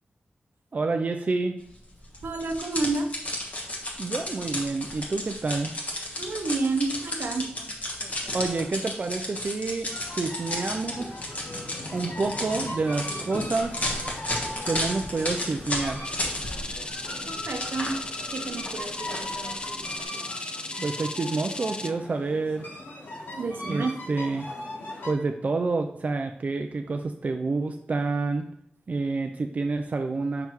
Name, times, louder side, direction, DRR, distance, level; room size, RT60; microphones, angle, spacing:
voice 1, 0.7-1.6 4.0-5.7 8.0-11.2 11.9-13.7 14.6-16.0 20.8-22.7 23.7-24.5 25.0-28.5 28.9-30.5, right 3 dB, 45° right, 5 dB, 0.4 m, -28 dB
sound 1, 2.1-16.7 17.0-20.0, left 1 dB, 45° left, 1.3 m, -33 dB
voice 2, 2.2-3.1 6.2-7.5 17.3-18.0 18.3-19.7 23.3-23.9, right 3 dB, 75° right, 5 dB, 0.7 m, -30 dB
sound 2, 9.9-25.1, left 1 dB, 75° left, 1.1 m, -39 dB
sound 3, 16.0-21.9, left 2 dB, 25° left, 0.3 m, -36 dB
5.9 x 5.5 x 3.0 m, 0.70 s
wide cardioid pair, 110°, 4 cm